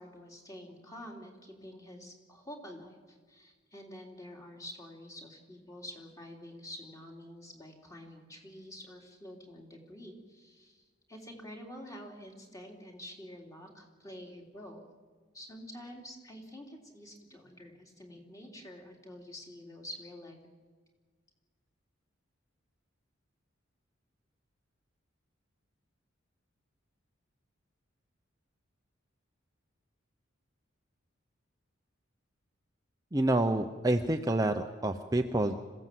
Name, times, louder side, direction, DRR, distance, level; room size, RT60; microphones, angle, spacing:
voice 1, 0.0-14.9 15.3-20.4, left 1 dB, 15° left, 1 dB, 3.5 m, -48 dB
voice 2, 33.1-35.6, right 1 dB, 20° right, 5 dB, 0.7 m, -28 dB
26.0 x 16.5 x 7.7 m, 1.5 s
head